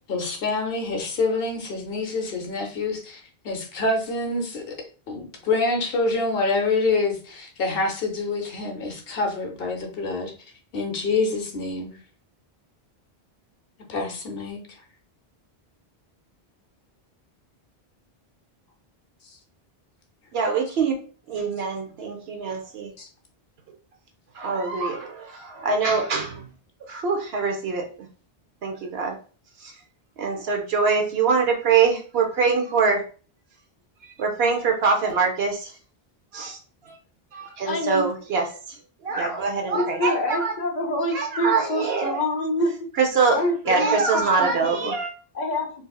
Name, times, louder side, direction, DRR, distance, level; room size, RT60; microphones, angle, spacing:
voice 1, 0.1-4.7 5.1-10.3 10.7-11.9 13.9-14.6 23.0-23.1, left 3 dB, 70° left, 3 dB, 0.9 m, -26 dB
voice 2, 20.3-20.9 21.3-22.9 24.4-26.5 26.9-27.9 28.6-29.1 30.2-33.0 34.2-35.7 36.3-36.6 37.3-38.4 39.0-40.5 41.1-42.2 43.0-43.4 43.7-45.1, right 5 dB, 80° right, 3 dB, 1.0 m, -23 dB
voice 3, 37.6-38.1 39.1-39.3 39.7-42.7 43.3-44.9 45.3-45.7, left 1 dB, 45° left, 0 dB, 1.0 m, -26 dB
3.9 x 2.7 x 2.3 m, 0.38 s
omnidirectional pair, 1.0 m